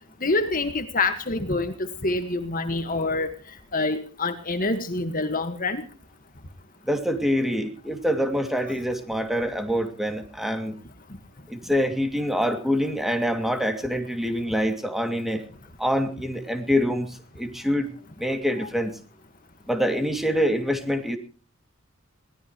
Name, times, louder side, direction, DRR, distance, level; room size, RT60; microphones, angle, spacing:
voice 1, 0.2-3.3 3.7-5.8, left 2 dB, 45° left, 8 dB, 1.8 m, -26 dB
voice 2, 6.8-10.8 11.5-15.4 15.8-17.9 18.2-19.0 19.7-21.2, equal, ahead, 5 dB, 2.7 m, -25 dB
22.5 x 18.0 x 3.2 m, 0.37 s
head